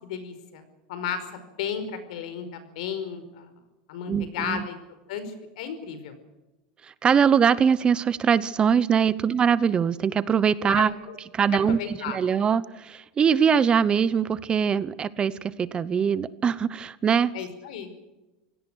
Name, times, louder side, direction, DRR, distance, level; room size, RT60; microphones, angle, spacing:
voice 1, 0.0-3.5 3.9-4.8 5.1-6.2 10.7-11.2 11.6-12.2 17.3-17.9, left 7 dB, 80° left, 10 dB, 5.0 m, -34 dB
voice 2, 4.1-4.6 7.0-10.9 11.3-11.8 12.1-17.3, right 7 dB, 20° right, 17 dB, 0.8 m, -22 dB
27.0 x 17.5 x 6.4 m, 1.0 s
supercardioid pair, 145°, 4 cm